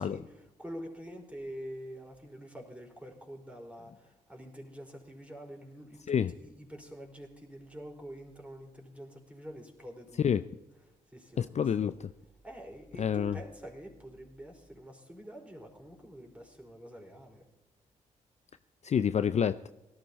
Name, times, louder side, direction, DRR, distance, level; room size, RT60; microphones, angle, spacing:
voice 1, 0.0-10.2 10.9-11.6 12.4-17.5, equal, 5° right, 1 dB, 4.5 m, -46 dB
voice 2, 11.4-12.1 13.0-13.4 18.8-19.7, left 8 dB, 40° left, 13 dB, 0.5 m, -28 dB
18.0 x 13.0 x 4.2 m, 1.0 s
hypercardioid pair, 45°, 17 cm